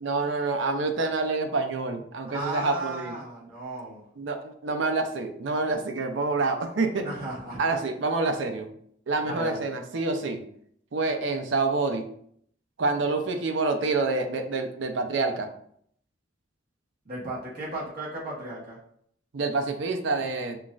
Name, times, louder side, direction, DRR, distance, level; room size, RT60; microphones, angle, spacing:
voice 1, 0.0-3.1 4.2-7.2 7.6-8.7 9.1-10.4 10.9-12.0 12.8-15.5 19.3-20.6, right 3 dB, 65° right, 6 dB, 0.5 m, -27 dB
voice 2, 2.3-4.0 7.0-7.6 9.2-9.7 17.0-18.8, right 1 dB, 45° right, -6 dB, 1.2 m, -35 dB
5.8 x 2.4 x 2.4 m, 0.67 s
head